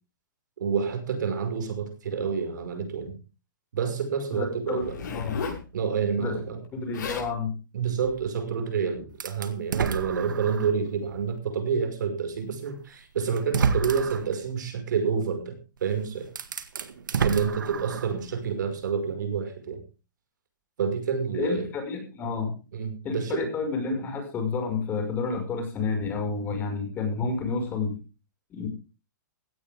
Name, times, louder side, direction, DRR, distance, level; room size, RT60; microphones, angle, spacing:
voice 1, 0.6-3.1 3.7-5.0 5.7-6.6 7.7-16.3 17.2-19.8 20.8-21.7 22.7-23.5, right 6 dB, 70° right, 6 dB, 5.6 m, -28 dB
voice 2, 4.3-5.4 6.2-6.4 6.7-7.5 21.3-22.5 23.0-28.0 28.5-28.7, left 4 dB, 20° left, 4 dB, 5.8 m, -30 dB
Zipper (clothing), 4.8-5.6 6.6-6.7 6.9-7.3 8.0-8.2, left 5 dB, 70° left, 6.1 m, -34 dB
sound 1, 9.2-10.8 11.4-11.5 12.7-12.8 13.4-14.3 15.8-15.9 16.3-18.2, right 6 dB, 85° right, 1.9 m, -29 dB
17.0 x 14.0 x 3.7 m, 0.33 s
hypercardioid pair, 150°, 10 cm